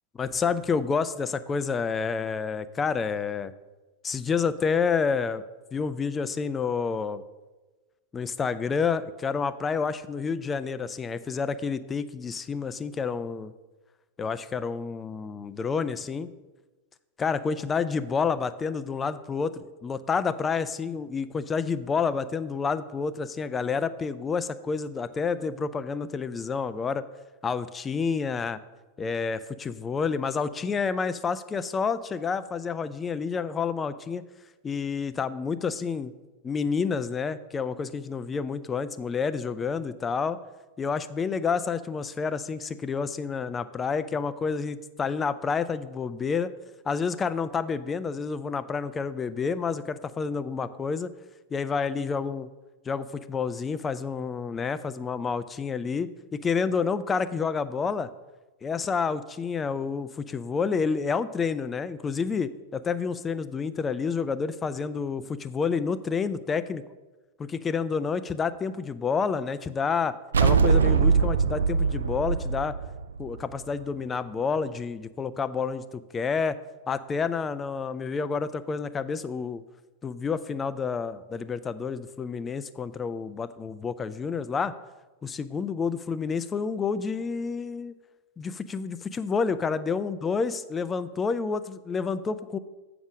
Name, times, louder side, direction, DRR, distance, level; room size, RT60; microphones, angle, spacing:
voice 1, 0.2-3.5 4.0-5.4 5.7-7.2 8.1-13.5 14.2-16.3 17.2-27.1 27.4-28.6 29.0-34.2 34.6-36.1 36.4-40.4 40.8-46.5 46.9-51.1 51.5-52.5 52.9-58.1 58.6-66.8 67.4-70.1 70.4-72.7 73.2-76.6 76.9-79.6 80.0-84.7 85.2-87.9 88.4-92.6, left 5 dB, 20° left, 14 dB, 0.5 m, -29 dB
sound 1, 70.3-73.8, right 5 dB, 70° right, 0.4 m, -22 dB
7.3 x 6.0 x 6.2 m, 1.2 s
figure-of-eight pair, 90°, 0 cm